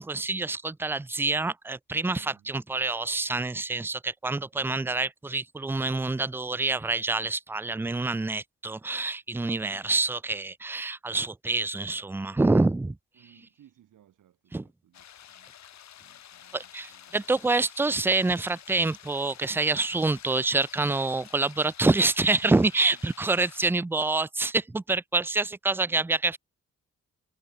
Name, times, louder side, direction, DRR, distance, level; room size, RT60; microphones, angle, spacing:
voice 1, 0.0-13.0 14.5-14.6 16.5-26.4, right 3 dB, 10° right, 0.4 m, -27 dB
voice 2, 2.1-2.6 9.6-10.0 13.1-15.6 16.0-17.2 22.8-23.0 25.9-26.2, right 11 dB, 90° right, 7.3 m, -61 dB
sound 1, 14.9-23.7, left 10 dB, 65° left, 1.3 m, -50 dB
cardioid pair, 115°, 30 cm